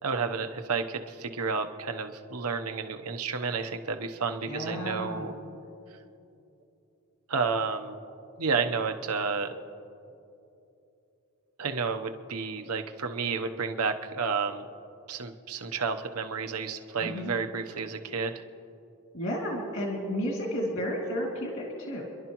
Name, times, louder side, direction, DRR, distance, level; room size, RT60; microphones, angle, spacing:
voice 1, 0.0-5.3 7.3-8.0 8.4-9.5 11.6-14.7 15.1-18.3, right 5 dB, 90° right, 6 dB, 0.9 m, -31 dB
voice 2, 4.5-5.3 17.0-17.3 19.1-22.0, equal, 60° left, -2 dB, 2.5 m, -32 dB
29.5 x 11.5 x 3.0 m, 2.8 s
head